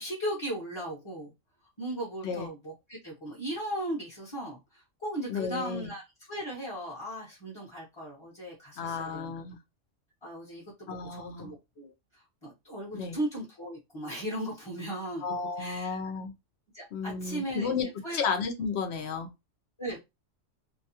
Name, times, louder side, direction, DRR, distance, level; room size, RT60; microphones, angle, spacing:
voice 1, 0.0-1.3 1.8-6.0 6.3-9.3 10.2-15.3 15.6-16.0 16.7-18.2 19.8-20.0, right 1 dB, 25° left, 0.9 m, -37 dB
voice 2, 5.3-5.9 8.8-9.6 10.9-11.5 12.9-13.2 15.2-16.3 16.9-17.9 18.1-19.3, left 5 dB, 60° left, 0.9 m, -33 dB
2.7 x 2.2 x 2.7 m
omnidirectional pair, 1.3 m